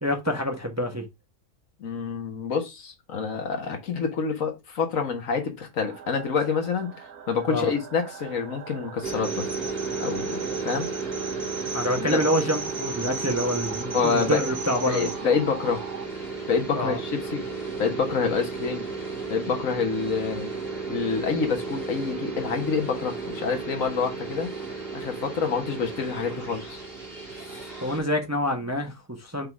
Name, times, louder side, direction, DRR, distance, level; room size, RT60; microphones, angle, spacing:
voice 1, 0.0-1.0 7.5-7.7 11.7-15.1 16.7-17.0 27.5-29.5, equal, 15° right, 0.9 m, -27 dB
voice 2, 1.8-6.9 7.3-9.5 10.0-10.9 12.0-12.2 13.9-14.4 14.9-15.8 16.5-17.4 17.8-18.9 19.3-20.5 20.9-24.5 24.9-26.8, left 5 dB, 65° left, 1.6 m, -27 dB
sound 1, 5.8-16.1, right 8 dB, 85° right, 1.3 m, -42 dB
sound 2, 9.0-28.0, right 4 dB, 40° right, 3.0 m, -33 dB
5.4 x 3.8 x 4.6 m
omnidirectional pair, 1.5 m